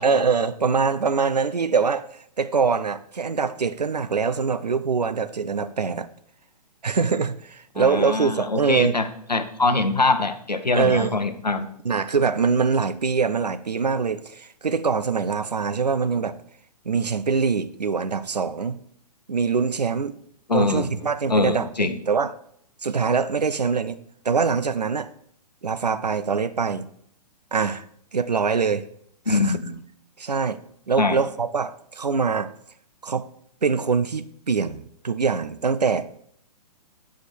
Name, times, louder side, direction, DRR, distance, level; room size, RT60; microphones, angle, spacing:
voice 1, 0.0-2.1 2.4-6.1 6.8-9.0 10.7-11.2 11.8-16.3 16.9-18.8 19.3-20.2 20.5-22.3 22.8-24.0 24.2-25.1 25.6-26.9 27.5-27.8 28.1-28.9 29.3-29.6 30.2-30.6 30.9-32.5 33.0-33.3 33.6-36.1, right 5 dB, 80° right, 0.5 m, -23 dB
voice 2, 7.7-11.7 20.5-21.0 21.3-22.0 29.3-29.8 31.0-31.2, left 3 dB, 90° left, 0.8 m, -23 dB
7.8 x 4.7 x 4.5 m
figure-of-eight pair, 120°, 21 cm